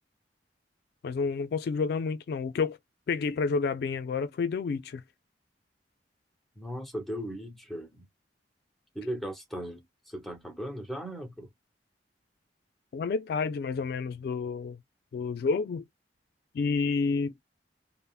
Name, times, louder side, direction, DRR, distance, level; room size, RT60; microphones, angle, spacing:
voice 1, 1.0-2.8 3.1-5.0 12.9-14.8 15.1-15.8 16.5-17.4, left 4 dB, 60° left, 0.3 m, -29 dB
voice 2, 6.6-8.1 8.9-11.5, equal, ahead, 0.7 m, -37 dB
3.4 x 2.0 x 2.3 m
head